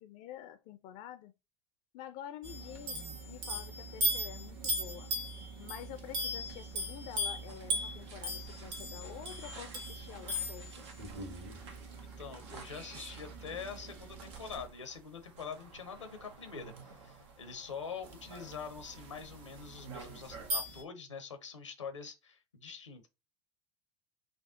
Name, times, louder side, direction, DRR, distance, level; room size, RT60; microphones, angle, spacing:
voice 1, 0.0-1.3 1.9-5.1 5.6-11.0, left 11 dB, 55° left, 0.5 m, -48 dB
sound 1, 2.4-14.7 16.8-16.9 18.0-20.8, right 1 dB, 55° right, 1.5 m, -39 dB
sound 2, 6.1-20.5, right 5 dB, 75° right, 0.9 m, -54 dB
voice 2, 12.0-23.1, left 6 dB, 85° left, 0.9 m, -45 dB
5.0 x 2.3 x 3.7 m
figure-of-eight pair, 70°, 15 cm